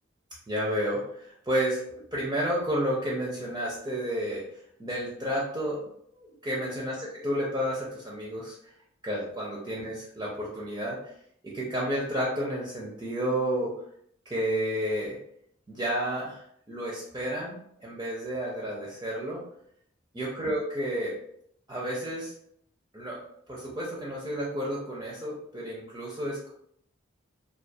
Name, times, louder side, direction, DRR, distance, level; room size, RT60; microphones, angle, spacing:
voice 1, 0.5-4.5 4.8-8.7 9.0-11.1 11.4-13.7 14.3-15.2 15.7-19.4 20.1-21.2 21.7-22.3 22.9-26.5, equal, 20° right, -5 dB, 0.4 m, -31 dB
2.3 x 2.2 x 2.6 m, 0.69 s
head